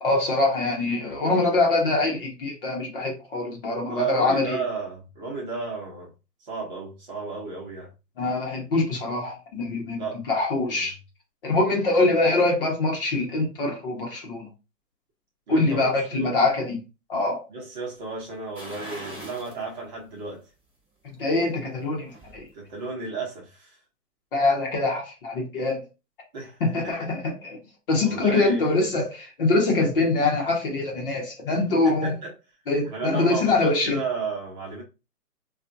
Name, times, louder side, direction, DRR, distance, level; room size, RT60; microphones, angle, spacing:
voice 1, 0.0-4.6 8.2-10.9 11.4-14.5 15.5-16.8 17.1-17.4 21.0-22.5 24.3-25.8 26.6-27.6 27.9-32.1 32.7-34.0, left 2 dB, 35° left, 1.0 m, -24 dB
voice 2, 3.9-6.1 6.4-7.9 10.0-10.2 10.7-10.8 15.5-15.8 16.1-16.3 17.5-20.4 22.5-23.8 26.3-26.6 26.8-26.9 28.0-28.7 31.8-32.3 32.9-34.8, right 4 dB, 30° right, 1.0 m, -33 dB
sound 1, 18.5-19.6 20.0-20.1 21.6-22.4 22.8-22.9, equal, 5° right, 1.0 m, -41 dB
3.3 x 2.5 x 2.7 m
hypercardioid pair, 155°, 48 cm